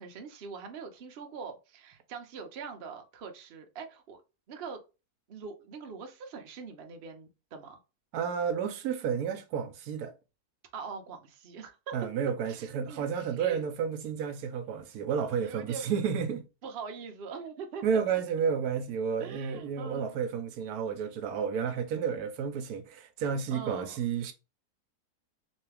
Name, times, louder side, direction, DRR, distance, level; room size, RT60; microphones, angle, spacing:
voice 1, 0.0-4.2 4.5-4.8 5.3-7.8 10.7-11.9 12.5-13.6 15.2-15.9 16.6-18.2 19.2-20.2 23.5-24.0, right 5 dB, 55° right, 0.7 m, -43 dB
voice 2, 8.1-10.1 11.9-16.4 17.8-24.3, right 7 dB, 75° right, 1.1 m, -31 dB
3.3 x 3.1 x 3.3 m
omnidirectional pair, 1.6 m